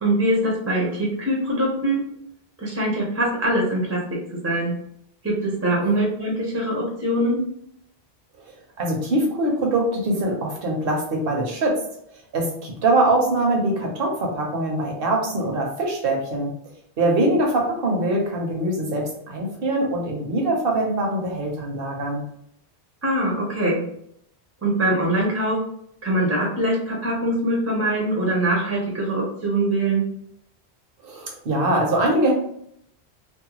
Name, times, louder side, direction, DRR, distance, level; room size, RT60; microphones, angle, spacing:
voice 1, 0.0-2.0 2.6-4.0 4.4-4.7 5.2-7.4 23.0-23.8 24.6-25.6 26.0-30.0, right 1 dB, 20° right, -3 dB, 0.5 m, -23 dB
voice 2, 8.8-11.8 12.3-16.5 17.0-22.2 31.0-32.3, right 1 dB, 60° right, 0 dB, 0.9 m, -23 dB
2.6 x 2.1 x 2.9 m, 0.70 s
omnidirectional pair, 1.1 m